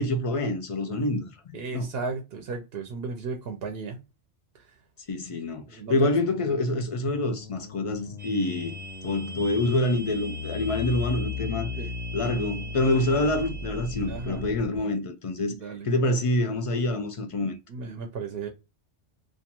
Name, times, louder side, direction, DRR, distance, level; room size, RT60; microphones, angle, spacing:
voice 1, 0.0-1.9 5.1-8.7 9.0-11.7 12.1-15.5 15.8-17.6, left 2 dB, 50° left, 0.4 m, -26 dB
voice 2, 1.5-4.0 5.7-6.1 11.8-11.9 14.1-14.5 15.6-15.9 17.7-18.5, right 4 dB, 70° right, 0.8 m, -34 dB
sound 1, 6.0-14.8, left 5 dB, 75° left, 0.8 m, -37 dB
sound 2, 8.2-14.5, right 2 dB, 10° right, 0.5 m, -43 dB
2.4 x 2.2 x 2.8 m
omnidirectional pair, 1.1 m